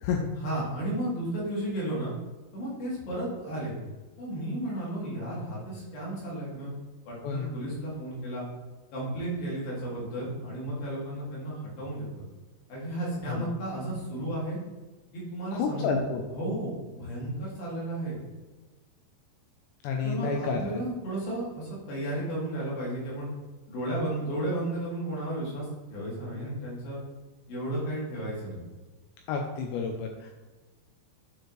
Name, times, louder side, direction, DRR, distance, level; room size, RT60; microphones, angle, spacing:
voice 1, 0.4-2.1 2.5-3.8 4.2-6.8 7.1-8.5 8.9-12.2 12.7-14.6 15.1-16.0 16.3-18.2 20.0-23.3 23.7-27.0 27.5-28.6, right 1 dB, 55° left, -6 dB, 3.6 m, -33 dB
voice 2, 15.5-16.2 19.8-20.6 29.3-30.3, left 5 dB, 85° left, 2 dB, 2.5 m, -30 dB
9.2 x 4.4 x 3.1 m, 1.2 s
omnidirectional pair, 5.7 m